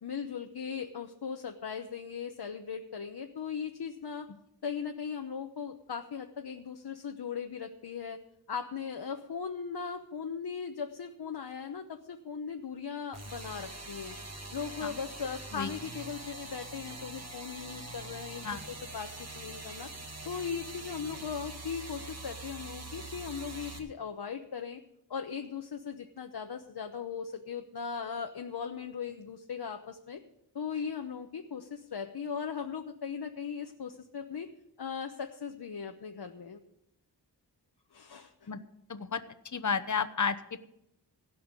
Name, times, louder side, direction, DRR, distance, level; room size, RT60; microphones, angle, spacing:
voice 1, 0.0-4.3 4.6-8.2 8.5-14.2 14.5-19.9 20.2-24.8 25.1-30.2 30.5-34.5 34.8-36.6 37.9-38.5, left 6 dB, 65° left, 4 dB, 1.0 m, -38 dB
sound 1, 13.1-23.8, right 2 dB, 40° right, 1.7 m, -44 dB
voice 2, 38.9-39.2 39.5-40.6, left 5 dB, 45° left, 9 dB, 1.0 m, -31 dB
17.0 x 5.7 x 8.2 m, 0.79 s
wide cardioid pair, 85°, 41 cm